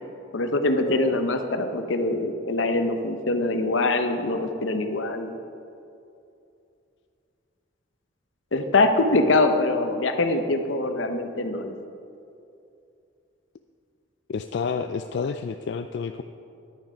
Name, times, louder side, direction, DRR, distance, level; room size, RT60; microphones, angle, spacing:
voice 1, 0.3-5.4 8.5-11.7, left 2 dB, 80° left, 7 dB, 0.8 m, -23 dB
voice 2, 14.3-16.2, left 5 dB, 60° left, 8 dB, 0.3 m, -29 dB
10.5 x 9.1 x 5.0 m, 2.6 s
head